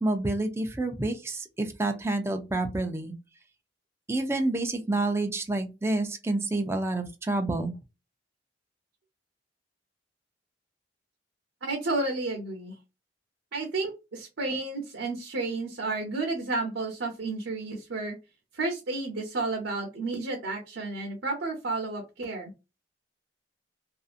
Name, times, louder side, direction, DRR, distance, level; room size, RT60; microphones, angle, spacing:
voice 1, 0.0-3.1 4.1-7.7, right 2 dB, 15° right, 5 dB, 0.4 m, -28 dB
voice 2, 11.6-12.7 13.5-18.2 18.5-22.5, right 3 dB, 90° right, 1 dB, 0.7 m, -31 dB
2.7 x 2.4 x 2.4 m, 0.26 s
head